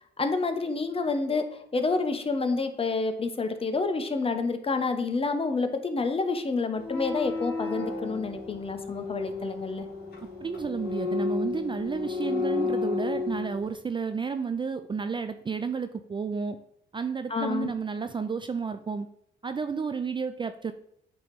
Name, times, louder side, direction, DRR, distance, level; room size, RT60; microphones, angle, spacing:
voice 1, 0.2-9.9 17.3-17.7, left 4 dB, 30° left, 7 dB, 0.9 m, -28 dB
sound 1, 6.8-13.7, left 4 dB, 50° left, 2.0 m, -32 dB
voice 2, 10.4-16.6 16.9-19.1 19.4-20.7, right 5 dB, 25° right, 9 dB, 0.4 m, -31 dB
8.6 x 3.0 x 5.2 m, 0.71 s
cardioid pair, 90°, 20 cm